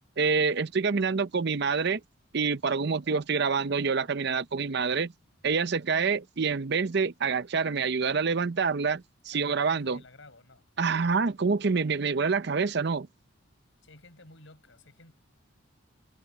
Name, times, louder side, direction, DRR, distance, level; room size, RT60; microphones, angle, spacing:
voice 1, 0.2-2.0 2.3-5.1 5.4-10.0 10.8-13.1, right 5 dB, 55° right, 0.6 m, -27 dB
voice 2, 9.3-10.7 13.8-15.1, left 2 dB, 65° left, 4.9 m, -53 dB
head